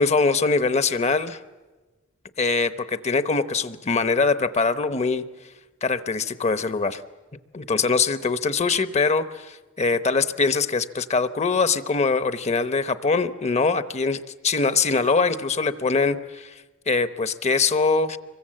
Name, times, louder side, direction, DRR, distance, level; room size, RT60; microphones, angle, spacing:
voice 1, 0.0-1.4 2.4-5.2 5.8-7.0 7.5-16.5 16.9-18.2, left 4 dB, 35° left, 12 dB, 0.8 m, -23 dB
26.0 x 23.5 x 7.7 m, 1.2 s
head